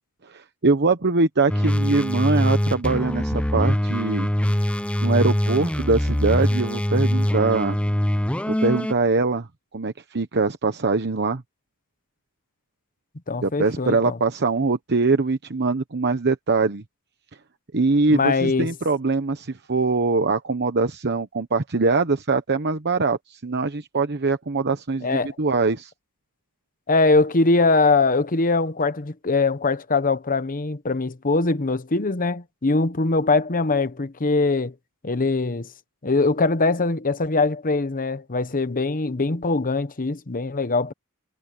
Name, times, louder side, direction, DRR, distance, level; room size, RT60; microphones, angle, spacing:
voice 1, 0.3-4.3 5.0-7.8 8.5-9.5 9.7-11.4 13.4-16.8 17.7-25.9, right 3 dB, 50° right, 1.0 m, -22 dB
sound 1, 1.5-8.9, equal, 5° left, 0.7 m, -23 dB
voice 2, 13.3-14.2 18.1-18.7 25.0-25.3 26.9-34.7 35.0-35.7 36.0-40.9, left 3 dB, 40° left, 1.0 m, -22 dB
head